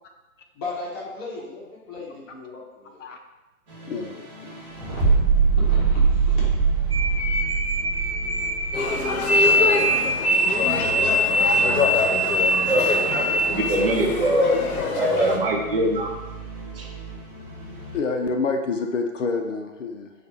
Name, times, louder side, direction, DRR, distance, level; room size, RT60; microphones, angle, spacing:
voice 1, 0.5-3.0 5.6-7.1, left 3 dB, 15° left, -6 dB, 0.8 m, -37 dB
sound 1, 3.7-18.0, right 5 dB, 20° right, 0.9 m, -27 dB
voice 2, 3.9-4.3 5.0-5.1 17.9-20.1, left 4 dB, 60° left, 4 dB, 0.6 m, -27 dB
sound 2, 6.9-13.6, equal, 80° right, 1.0 m, -22 dB
sound 3, 8.7-15.4, left 3 dB, 75° left, 1.0 m, -26 dB
voice 3, 12.7-14.5 15.0-16.1 16.8-16.9, right 2 dB, 40° right, 0 dB, 0.6 m, -23 dB
4.1 x 2.5 x 4.5 m, 1.0 s
hypercardioid pair, 145°, 44 cm